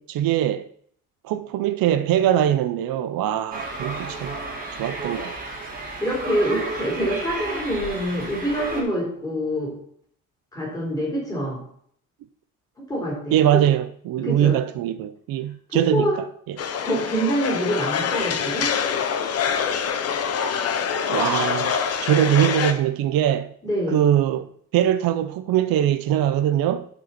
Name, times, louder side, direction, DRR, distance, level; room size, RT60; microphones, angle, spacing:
voice 1, 0.1-0.7 1.2-4.4 4.8-5.3 13.3-16.6 21.1-23.5 23.9-26.9, right 11 dB, 90° right, 0.6 m, -22 dB
sound 1, 3.5-8.8, right 2 dB, 25° right, 2.0 m, -32 dB
voice 2, 6.0-9.7 10.5-11.6 12.8-13.6 14.2-14.6 15.9-16.2 16.8-18.7 23.6-24.0, equal, 10° left, 3.7 m, -25 dB
sound 2, 16.6-22.7, left 7 dB, 45° left, 0.8 m, -25 dB
12.5 x 5.3 x 4.3 m
cardioid pair, 175°, 34 cm